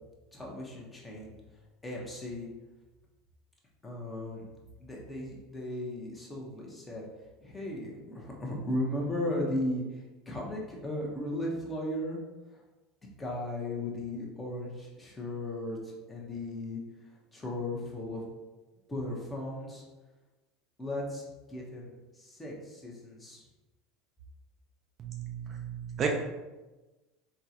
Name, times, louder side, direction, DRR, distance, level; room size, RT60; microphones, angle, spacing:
voice 1, 0.3-1.4 1.8-2.5 3.8-4.4 4.8-7.0 7.4-12.2 13.2-16.8 17.3-18.2 18.9-19.8 20.8-23.4, left 1 dB, 15° left, -3 dB, 1.0 m, -36 dB
voice 2, 25.0-26.1, right 7 dB, 40° right, 1 dB, 0.4 m, -33 dB
3.6 x 2.3 x 2.9 m, 1.1 s
hypercardioid pair, 85°, 0 cm